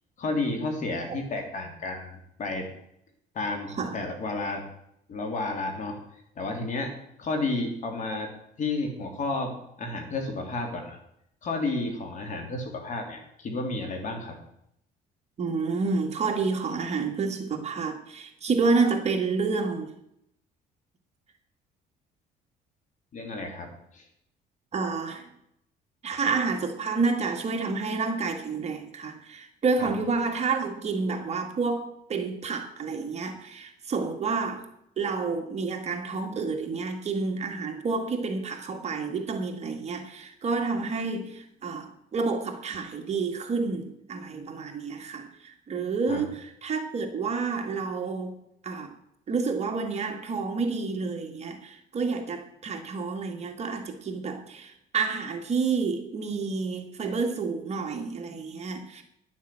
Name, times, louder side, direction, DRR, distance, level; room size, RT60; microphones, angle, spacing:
voice 1, 0.2-2.7 3.3-4.7 5.1-6.0 6.3-8.3 8.6-11.0 11.4-14.4 23.1-24.1 29.8-29.9 46.1-46.2, left 2 dB, 45° left, 3 dB, 3.2 m, -32 dB
voice 2, 15.4-19.9 24.7-25.3 26.0-34.7 35.0-48.3 48.6-48.9 49.3-59.0, right 4 dB, 40° right, 4 dB, 1.9 m, -29 dB
11.0 x 7.3 x 7.6 m, 0.76 s
cardioid pair, 110°, 17 cm